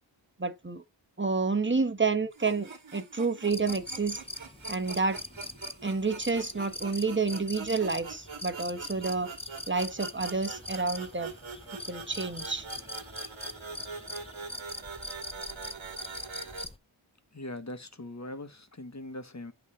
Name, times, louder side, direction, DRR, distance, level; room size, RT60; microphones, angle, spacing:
voice 1, 0.4-0.8 1.2-4.2 4.7-5.2 5.8-9.3 9.7-11.3 11.9-12.7, right 4 dB, 25° right, 1.3 m, -29 dB
sound 1, 2.3-16.7, right 4 dB, 85° right, 2.0 m, -44 dB
sound 2, 3.5-16.8, left 2 dB, 15° left, 0.7 m, -42 dB
voice 2, 17.3-19.5, left 1 dB, 35° left, 1.3 m, -41 dB
8.4 x 3.2 x 4.9 m
wide cardioid pair, 60°, 46 cm